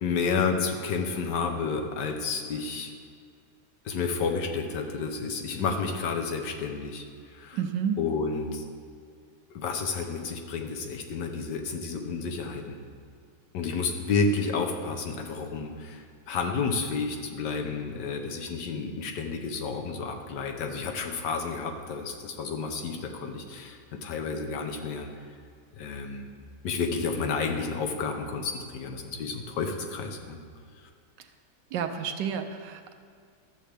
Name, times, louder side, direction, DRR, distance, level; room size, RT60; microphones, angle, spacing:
voice 1, 0.0-2.9 3.8-7.6 8.0-8.6 9.5-12.8 13.5-25.1 25.7-26.3 26.6-30.4, left 4 dB, 80° left, 3 dB, 1.5 m, -31 dB
voice 2, 7.5-8.0 31.7-32.9, right 7 dB, 90° right, 7 dB, 1.3 m, -30 dB
12.5 x 7.4 x 3.4 m, 2.2 s
omnidirectional pair, 1.8 m